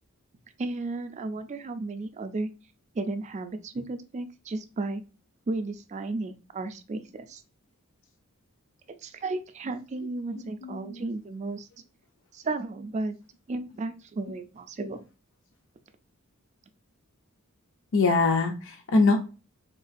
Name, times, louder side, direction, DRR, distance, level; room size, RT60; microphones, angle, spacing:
voice 1, 0.6-2.5 2.9-5.0 5.5-7.4 8.9-11.7 12.3-13.2 13.5-15.0, right 2 dB, 35° right, 9 dB, 0.4 m, -34 dB
voice 2, 10.6-11.0 17.9-19.2, left 3 dB, 60° left, 4 dB, 0.5 m, -23 dB
3.6 x 2.4 x 2.4 m, 0.33 s
head